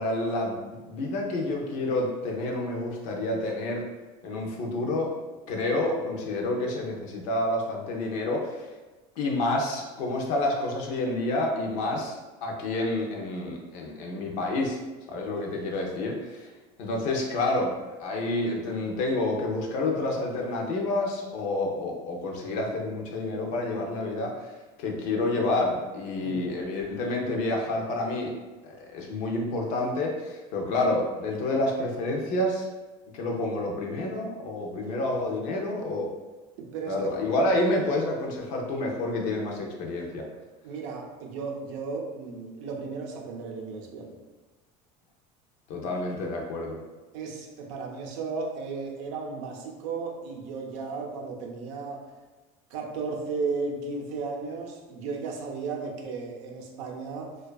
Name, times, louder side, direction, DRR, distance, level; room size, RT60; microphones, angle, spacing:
voice 1, 0.0-3.8 4.2-5.1 5.5-8.7 9.2-12.2 12.4-14.8 15.1-16.5 16.8-24.5 24.8-28.3 28.6-32.7 33.1-36.1 36.9-40.2 45.7-46.8, left 2 dB, 50° left, 0 dB, 0.5 m, -29 dB
voice 2, 36.6-37.1 40.6-44.2 47.1-52.1 52.7-57.4, right 4 dB, 90° right, 1 dB, 0.5 m, -35 dB
2.5 x 2.2 x 2.2 m, 1.2 s
cardioid pair, 170°, 15 cm